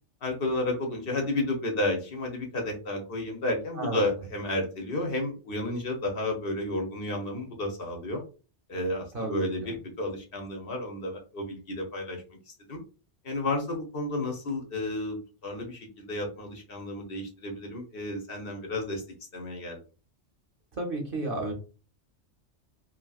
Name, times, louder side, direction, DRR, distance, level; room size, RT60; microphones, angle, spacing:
voice 1, 0.2-8.2 8.7-12.8 13.2-19.0 19.3-19.8, left 1 dB, 55° left, 2 dB, 0.9 m, -32 dB
voice 2, 3.8-4.1 9.1-9.8 20.7-21.5, right 2 dB, 55° right, 2 dB, 0.9 m, -32 dB
2.9 x 2.7 x 2.3 m, 0.34 s
omnidirectional pair, 1.2 m